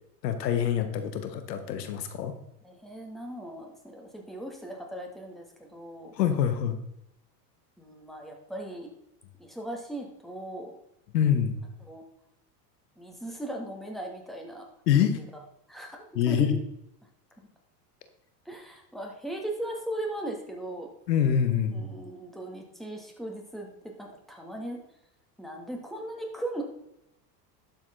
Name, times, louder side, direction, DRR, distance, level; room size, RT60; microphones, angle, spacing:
voice 1, 0.2-2.3 6.1-6.8 11.1-11.6 14.9-15.2 16.1-16.5 21.1-21.8, left 8 dB, 85° left, 9 dB, 1.6 m, -25 dB
voice 2, 2.6-6.1 7.8-8.9 9.4-10.7 11.8-12.0 13.0-14.6 15.7-16.5 18.4-20.9 21.7-24.8 25.4-26.6, right 1 dB, ahead, 0 dB, 2.8 m, -38 dB
12.0 x 7.6 x 4.1 m, 0.83 s
hypercardioid pair, 100°, 48 cm